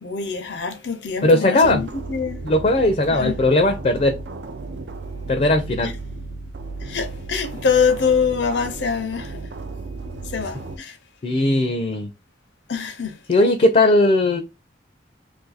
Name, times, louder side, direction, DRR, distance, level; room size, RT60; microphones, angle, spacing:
voice 1, 0.0-2.4 3.1-3.4 5.8-5.9 6.8-9.4 10.2-11.0 12.7-13.2, left 6 dB, 85° left, 0.6 m, -24 dB
voice 2, 1.2-1.8 2.4-4.1 5.3-5.9 11.2-12.1 13.3-14.4, left 2 dB, 40° left, 0.4 m, -18 dB
sound 1, 1.6-10.8, right 3 dB, 75° right, 0.4 m, -34 dB
2.6 x 2.6 x 3.9 m
head